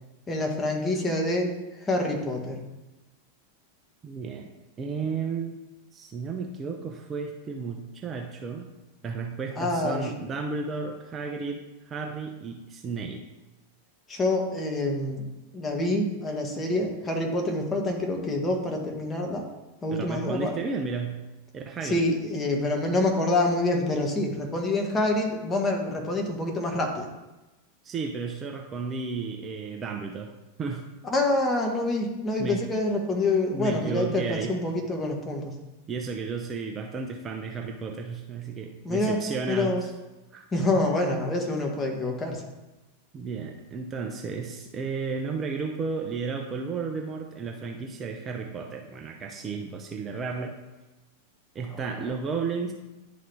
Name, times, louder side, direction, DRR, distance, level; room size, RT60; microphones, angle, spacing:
voice 1, 0.3-1.5 1.8-2.6 9.6-10.1 14.1-15.3 15.5-19.4 19.8-20.5 21.8-27.1 31.0-35.6 38.8-39.2 39.5-39.8 40.5-42.4, left 2 dB, 20° left, 2 dB, 1.2 m, -26 dB
voice 2, 4.0-4.5 4.8-5.6 5.9-8.7 9.0-13.2 20.0-21.2 21.5-22.0 27.8-30.3 30.6-30.8 32.4-32.6 33.5-34.6 35.9-39.8 40.3-40.5 43.1-50.5 51.5-52.7, right 5 dB, 25° right, 2 dB, 0.6 m, -33 dB
10.5 x 3.8 x 3.4 m, 1.1 s
figure-of-eight pair, 90°, 0 cm